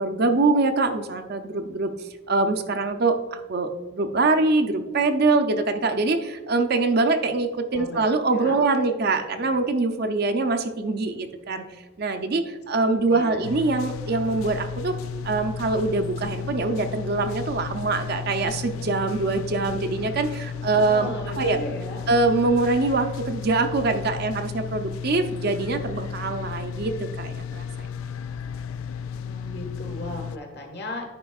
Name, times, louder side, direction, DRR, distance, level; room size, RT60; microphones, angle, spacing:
voice 1, 0.0-1.9 2.3-11.6 12.0-15.0 15.2-21.1 21.4-21.6 22.1-27.9, right 3 dB, 45° right, 6 dB, 0.5 m, -24 dB
voice 2, 12.5-13.4 20.7-22.0 29.1-31.1, left 1 dB, 50° left, 2 dB, 1.3 m, -37 dB
sound 1, 13.4-30.4, left 7 dB, 75° left, 0.3 m, -34 dB
10.5 x 5.1 x 2.3 m, 1.2 s
head